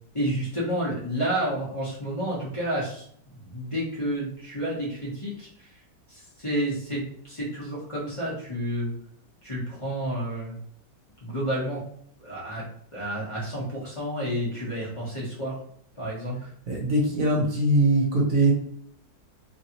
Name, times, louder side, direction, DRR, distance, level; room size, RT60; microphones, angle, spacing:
voice 1, 0.1-5.7 6.1-8.9 9.4-10.6 11.2-11.8 12.2-12.7 12.9-15.6 15.9-16.4, right 1 dB, 30° left, -9 dB, 0.6 m, -30 dB
voice 2, 16.7-18.5, right 1 dB, 55° right, -1 dB, 1.1 m, -21 dB
3.1 x 2.6 x 2.8 m, 0.63 s
omnidirectional pair, 1.9 m